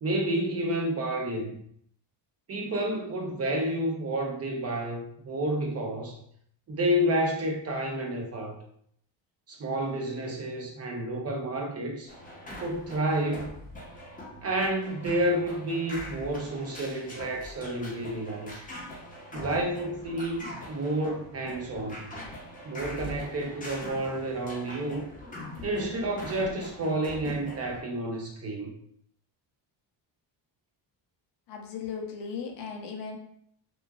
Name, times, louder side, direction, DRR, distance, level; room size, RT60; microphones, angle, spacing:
voice 1, 0.0-1.6 2.5-6.2 6.7-8.6 9.5-12.1 12.6-13.5 14.4-18.6 19.3-22.2 22.6-25.1 25.6-28.7, right 1 dB, 35° right, 1 dB, 0.5 m, -30 dB
sound 1, 12.1-27.8, left 1 dB, 20° left, 0.7 m, -42 dB
voice 2, 31.5-33.2, left 6 dB, 60° left, 2 dB, 0.7 m, -37 dB
3.0 x 2.2 x 2.3 m, 0.67 s
cardioid pair, 120°, 46 cm